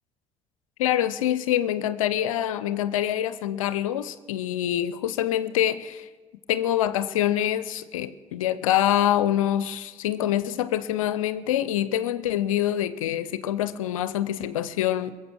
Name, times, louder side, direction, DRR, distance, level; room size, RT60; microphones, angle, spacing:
voice 1, 0.8-6.1 6.5-15.1, left 11 dB, 80° left, 14 dB, 0.5 m, -25 dB
22.0 x 7.3 x 6.3 m, 1.4 s
figure-of-eight pair, 50°, 17 cm